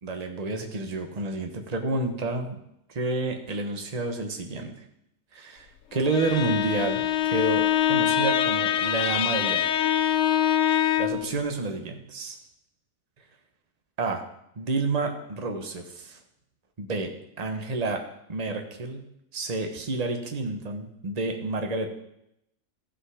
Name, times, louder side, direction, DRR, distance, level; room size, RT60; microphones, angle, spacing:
voice 1, 0.0-2.6 2.9-4.7 5.3-9.7 10.7-12.4 14.0-14.2 14.6-16.2 16.8-17.1 17.4-18.0 18.3-19.0 19.3-21.9, right 3 dB, 30° right, 4 dB, 1.1 m, -29 dB
Bowed string instrument, 6.0-11.3, left 10 dB, 60° left, 0.8 m, -24 dB
15.0 x 5.4 x 4.9 m, 0.79 s
omnidirectional pair, 1.7 m